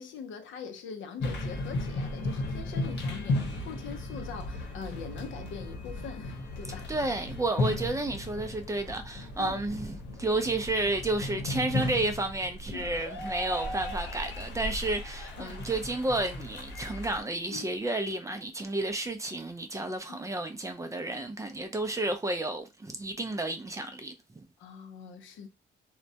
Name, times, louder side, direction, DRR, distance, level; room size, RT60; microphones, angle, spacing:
voice 1, 0.0-6.9 9.4-9.6 12.7-12.9 15.4-15.6 17.5-17.7 20.1-20.2 24.6-25.5, left 6 dB, 75° left, 0.5 m, -43 dB
sound 1, 1.2-17.2, left 2 dB, 60° left, 0.9 m, -35 dB
voice 2, 6.9-24.4, right 2 dB, 15° right, 0.4 m, -31 dB
2.2 x 2.1 x 2.7 m
cardioid pair, 90°, 20 cm